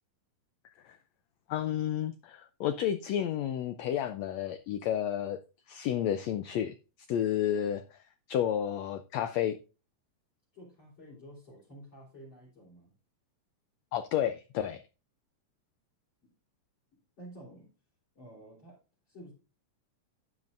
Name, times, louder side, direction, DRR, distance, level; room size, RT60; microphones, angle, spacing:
voice 1, 1.5-5.4 5.7-6.7 7.1-8.0 8.3-9.6 13.9-14.8, left 10 dB, 90° left, 1.5 m, -31 dB
voice 2, 10.5-12.9 16.2-16.3 17.2-17.7 18.1-18.8 19.1-19.3, right 1 dB, 35° left, 4.3 m, -51 dB
11.0 x 9.8 x 2.6 m
omnidirectional pair, 3.8 m